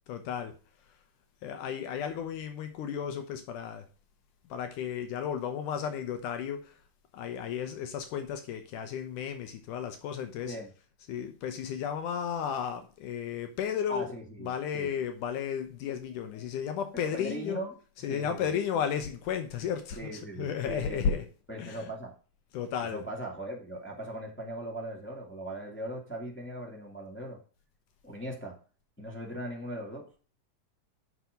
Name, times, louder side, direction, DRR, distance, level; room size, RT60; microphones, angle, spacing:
voice 1, 0.1-0.6 1.4-3.9 4.5-6.8 7.1-10.6 11.1-14.1 14.4-17.6 18.0-21.3 21.6-21.9 22.5-23.1, left 8 dB, 75° left, 2.4 m, -33 dB
voice 2, 13.9-14.9 16.9-17.8 18.1-18.5 20.0-21.2 21.5-22.1 22.9-27.4 28.0-28.6 29.0-30.1, right 1 dB, 5° left, 1.7 m, -39 dB
8.0 x 6.0 x 5.2 m
omnidirectional pair, 3.7 m